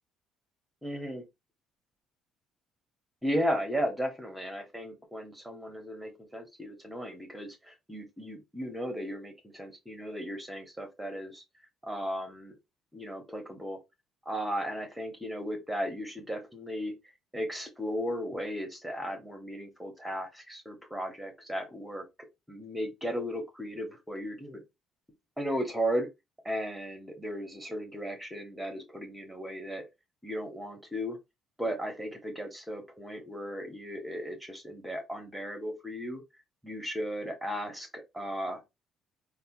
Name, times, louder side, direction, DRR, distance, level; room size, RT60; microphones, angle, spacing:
voice 1, 0.8-1.2 3.2-11.4 11.8-12.6 12.9-13.8 14.3-16.9 17.3-22.0 22.5-24.6 25.4-26.1 26.4-29.8 30.2-31.2 31.6-36.2 36.6-38.6, equal, 5° right, 0.9 m, -35 dB
4.7 x 2.1 x 2.9 m
cardioid pair, 155°, 0 cm